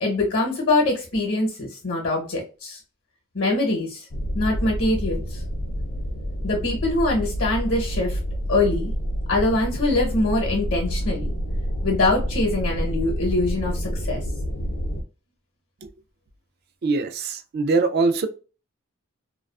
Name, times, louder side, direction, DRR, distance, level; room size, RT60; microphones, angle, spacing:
voice 1, 0.0-2.8 3.3-4.0 4.3-5.4 6.4-8.2 8.5-8.9 9.3-11.3 11.8-14.2, left 2 dB, 60° left, 0 dB, 0.8 m, -23 dB
sound 1, 4.1-15.0, equal, 40° left, 0.4 m, -28 dB
voice 2, 16.8-18.3, right 3 dB, 50° right, 9 dB, 0.3 m, -22 dB
2.4 x 2.3 x 2.3 m, 0.35 s
head